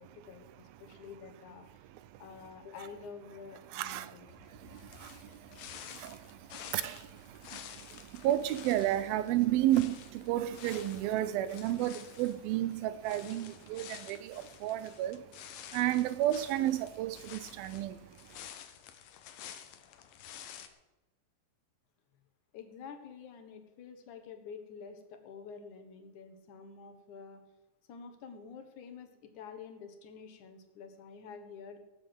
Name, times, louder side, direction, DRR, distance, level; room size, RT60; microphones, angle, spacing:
voice 1, 0.0-1.7 2.2-4.3 22.5-27.4 27.9-31.8, left 6 dB, 60° left, 2.8 m, -48 dB
voice 2, 3.7-15.3 15.7-18.5, right 13 dB, 85° right, 2.6 m, -33 dB
sound 1, 4.3-20.7, left 9 dB, 80° left, 2.8 m, -51 dB
18.0 x 7.4 x 7.9 m
omnidirectional pair, 4.1 m